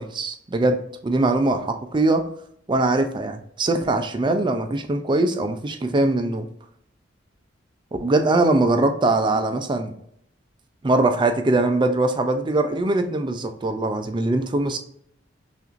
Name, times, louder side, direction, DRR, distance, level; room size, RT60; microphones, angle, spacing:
voice 1, 0.0-2.3 2.7-6.5 8.0-9.9 10.8-14.8, right 2 dB, 25° right, 7 dB, 0.4 m, -22 dB
5.7 x 2.5 x 2.5 m, 0.70 s
head